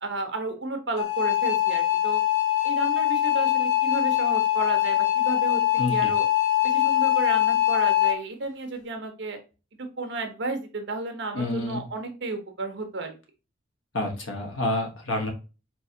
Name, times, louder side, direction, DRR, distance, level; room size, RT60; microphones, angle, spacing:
voice 1, 0.0-2.2 2.6-6.3 6.6-9.4 10.0-13.1, right 3 dB, 60° right, 6 dB, 0.9 m, -32 dB
sound 1, 1.0-8.1, left 12 dB, 65° left, 1.8 m, -23 dB
voice 2, 5.8-6.1 11.3-11.8 13.9-15.3, left 1 dB, 85° left, 2 dB, 1.1 m, -28 dB
4.7 x 2.8 x 2.7 m, 0.31 s
head